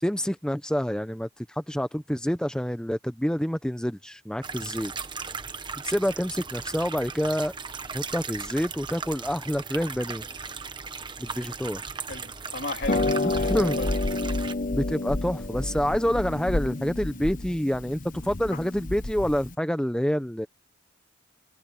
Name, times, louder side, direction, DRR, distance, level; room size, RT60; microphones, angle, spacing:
voice 1, 0.0-4.9 5.8-7.5 7.9-10.2 11.2-11.8 13.5-13.8 14.7-20.5, equal, 5° left, 0.8 m, -27 dB
sound 1, 4.4-14.5, right 5 dB, 25° right, 1.1 m, -37 dB
voice 2, 12.1-14.2, left 2 dB, 60° left, 3.0 m, -36 dB
Harp, 12.8-19.5, left 2 dB, 45° left, 1.2 m, -29 dB
head